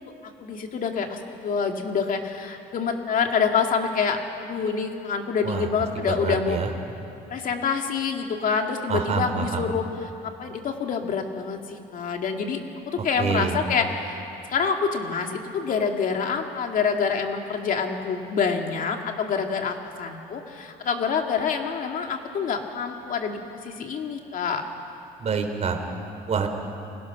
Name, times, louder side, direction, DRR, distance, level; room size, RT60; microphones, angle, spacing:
voice 1, 0.4-6.6 7.3-24.6, left 6 dB, 55° left, 3 dB, 2.4 m, -27 dB
voice 2, 6.2-6.7 8.9-9.6 13.2-13.6 25.2-25.8 26.3-26.5, right 6 dB, 40° right, 5 dB, 3.3 m, -26 dB
29.5 x 20.5 x 6.0 m, 2.7 s
cardioid pair, 110°, 17 cm